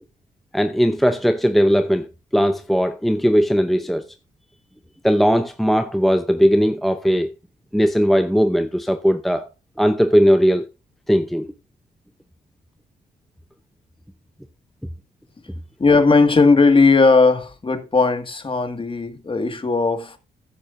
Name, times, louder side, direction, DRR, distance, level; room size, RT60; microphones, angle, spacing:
voice 1, 0.5-4.1 5.0-7.3 7.7-9.5 9.8-10.7 11.1-11.5, equal, ahead, 0.6 m, -18 dB
voice 2, 15.8-20.2, left 4 dB, 30° left, 1.9 m, -17 dB
14.5 x 11.0 x 2.6 m
cardioid pair, 95°, 18 cm